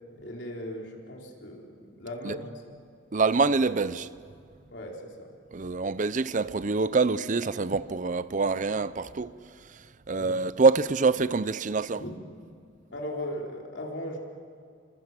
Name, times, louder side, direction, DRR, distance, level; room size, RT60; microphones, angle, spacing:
voice 1, 0.2-2.7 4.7-5.3 10.1-10.4 11.9-12.2 12.9-14.2, left 1 dB, 70° left, 4.3 m, -38 dB
voice 2, 3.1-4.1 5.5-9.3 10.1-12.0, right 4 dB, 40° right, 0.6 m, -25 dB
29.0 x 25.5 x 7.6 m
head